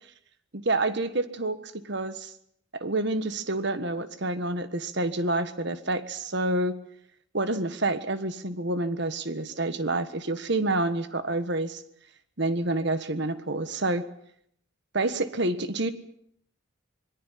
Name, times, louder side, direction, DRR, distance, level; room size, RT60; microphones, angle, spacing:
voice 1, 0.5-2.3 2.8-6.8 7.3-11.8 12.4-14.0 14.9-15.9, right 2 dB, 55° right, 11 dB, 1.5 m, -28 dB
25.5 x 22.5 x 5.9 m, 0.69 s
head